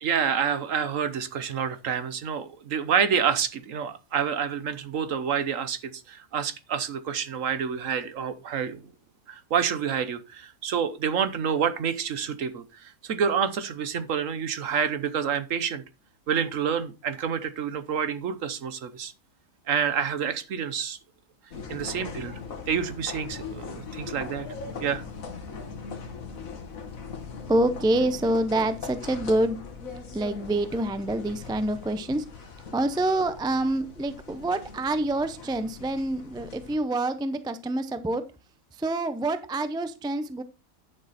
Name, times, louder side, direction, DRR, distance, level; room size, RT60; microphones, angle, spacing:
voice 1, 0.0-8.8 9.3-15.8 16.3-19.1 19.7-21.0 21.7-22.4 22.7-24.5 24.8-25.0, right 7 dB, 65° right, 13 dB, 1.3 m, -28 dB
sound 1, 21.5-36.8, left 5 dB, 70° left, 1.9 m, -40 dB
voice 2, 27.5-29.6 30.1-32.2 32.7-38.2 38.7-40.4, right 1 dB, 5° right, 11 dB, 0.4 m, -26 dB
10.5 x 6.6 x 4.3 m, 0.29 s
omnidirectional pair, 1.5 m